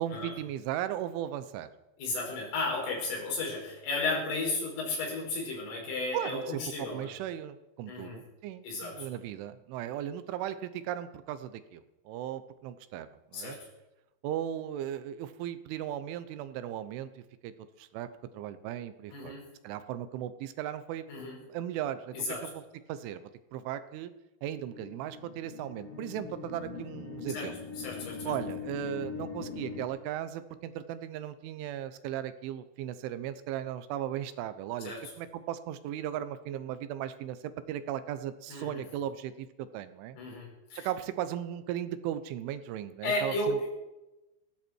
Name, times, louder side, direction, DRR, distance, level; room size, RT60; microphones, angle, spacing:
voice 1, 0.0-1.7 6.1-13.6 14.2-17.5 17.8-19.3 19.6-22.2 22.4-22.5 22.9-24.1 24.4-27.6 28.2-40.2 40.8-43.7, right 11 dB, 80° right, 12 dB, 3.3 m, -37 dB
voice 2, 2.0-7.1 7.9-8.2 8.6-9.1 13.3-13.7 19.1-19.5 21.1-21.4 22.1-22.5 27.3-28.3 34.8-35.0 38.5-38.8 40.1-40.9 43.0-43.7, left 2 dB, 85° left, -3 dB, 8.1 m, -34 dB
sound 1, 24.7-29.8, left 5 dB, 50° left, 2.0 m, -41 dB
19.0 x 16.0 x 4.5 m, 0.99 s
omnidirectional pair, 5.6 m